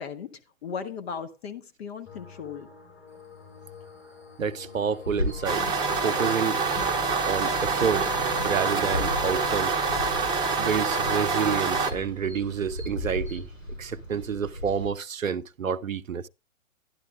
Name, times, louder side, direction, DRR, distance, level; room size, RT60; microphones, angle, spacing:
voice 1, 0.0-2.7, left 6 dB, 50° left, 1.1 m, -37 dB
sound 1, 2.0-9.7, left 6 dB, 30° left, 4.6 m, -46 dB
voice 2, 4.4-6.6 7.3-8.1 8.4-9.7 10.6-13.5 13.8-16.3, right 7 dB, 90° right, 0.6 m, -29 dB
sound 2, 5.1-14.9, left 1 dB, 80° left, 5.7 m, -37 dB
sound 3, 5.4-11.9, right 4 dB, 10° right, 0.8 m, -26 dB
12.0 x 12.0 x 2.4 m
figure-of-eight pair, 120°, 39 cm